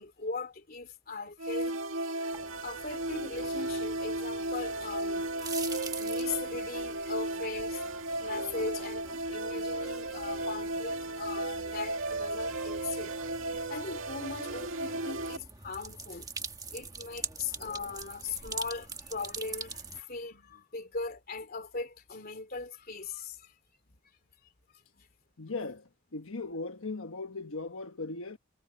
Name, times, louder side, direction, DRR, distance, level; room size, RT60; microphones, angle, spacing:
voice 1, 0.0-1.8 2.6-5.3 6.0-7.8 8.2-13.1 13.7-16.3 16.7-23.5 24.4-24.5, left 4 dB, 45° left, 2.9 m, -39 dB
sound 1, 1.4-15.4, right 2 dB, 80° right, 2.1 m, -34 dB
sound 2, 2.3-20.0, right 4 dB, 20° right, 1.3 m, -45 dB
voice 2, 25.4-28.4, left 3 dB, 85° left, 1.2 m, -38 dB
head